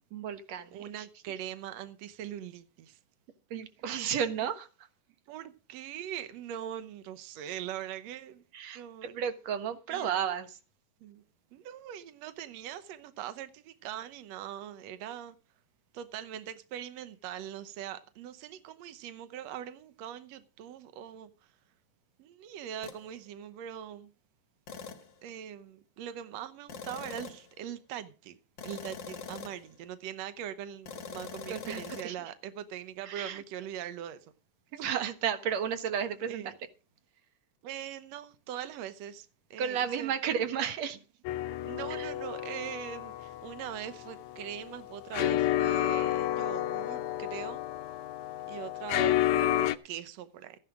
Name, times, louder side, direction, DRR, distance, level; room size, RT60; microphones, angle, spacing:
voice 1, 0.1-1.1 3.5-4.9 8.5-8.8 9.1-10.6 31.5-32.3 33.0-33.4 34.7-36.5 39.6-41.0 41.9-42.1, right 8 dB, 60° right, 2.1 m, -33 dB
voice 2, 0.7-3.0 5.3-8.4 8.7-9.2 9.9-10.1 11.0-11.2 11.5-15.3 15.9-21.3 22.2-24.1 25.2-28.4 28.6-34.2 34.8-34.9 36.3-36.5 37.6-40.1 41.6-47.6 48.5-50.6, right 10 dB, 85° right, 1.5 m, -41 dB
sound 1, 22.8-23.0 24.7-25.1 26.7-27.5 28.6-29.7 30.9-32.1, left 6 dB, 50° left, 1.3 m, -43 dB
sound 2, 41.2-49.8, left 13 dB, 90° left, 1.6 m, -31 dB
15.0 x 10.5 x 4.9 m
omnidirectional pair, 4.3 m